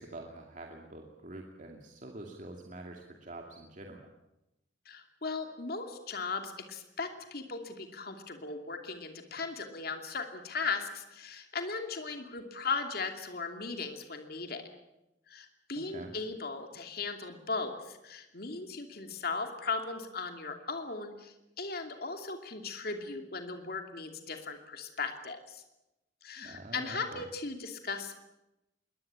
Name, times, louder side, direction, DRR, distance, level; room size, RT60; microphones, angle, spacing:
voice 1, 0.0-4.1 15.8-16.1 26.4-27.3, right 2 dB, 45° right, 1 dB, 2.4 m, -46 dB
voice 2, 4.9-14.6 15.3-25.6 26.2-28.2, left 4 dB, 55° left, 5 dB, 2.7 m, -37 dB
22.5 x 19.0 x 8.9 m, 0.92 s
head